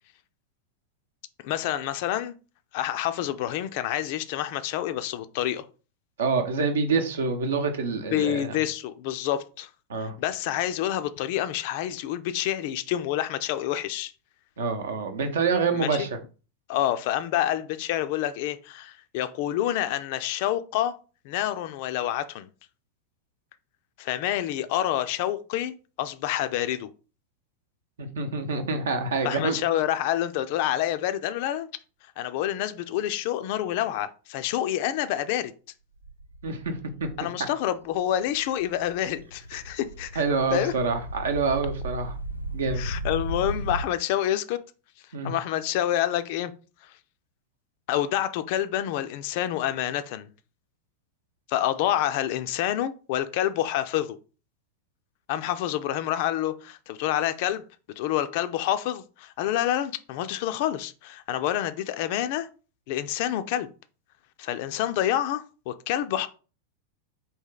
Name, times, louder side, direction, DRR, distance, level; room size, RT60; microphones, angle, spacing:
voice 1, 1.4-2.3 2.7-5.7 8.1-9.7 10.0-14.1 15.7-16.0 16.7-21.0 21.2-22.5 24.0-26.9 29.2-31.7 32.2-35.5 37.2-40.2 40.5-40.7 42.7-44.6 45.2-46.5 47.9-50.3 51.5-54.2 55.3-57.6 58.0-62.5 62.9-63.7 64.4-66.3, left 12 dB, 50° left, 0.4 m, -28 dB
voice 2, 6.2-8.6 9.9-10.1 14.6-16.2 28.0-29.6 36.4-37.1 40.1-42.2 42.5-42.8 45.1-45.3, right 4 dB, 65° right, 0.8 m, -27 dB
sound 1, 36.0-37.2 37.8-38.0 38.2-43.8, right 1 dB, 85° right, 0.4 m, -35 dB
4.2 x 2.8 x 3.8 m
figure-of-eight pair, 90°, 0 cm